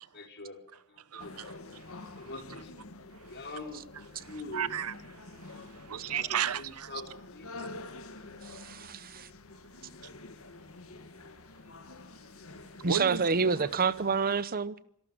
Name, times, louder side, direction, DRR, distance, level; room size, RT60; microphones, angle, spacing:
voice 1, 0.1-1.3 2.2-2.7 3.3-3.8 4.2-4.8 5.7-7.6, left 2 dB, 50° left, 4.2 m, -44 dB
voice 2, 1.1-2.3 3.1-3.4 4.1-7.0 7.6-7.7 12.8-13.3, right 8 dB, 90° right, 0.9 m, -36 dB
sound 1, 1.2-14.4, left 2 dB, 70° left, 1.7 m, -48 dB
voice 3, 8.6-9.3 12.8-14.7, right 5 dB, 40° right, 0.8 m, -28 dB
26.0 x 12.5 x 9.2 m
head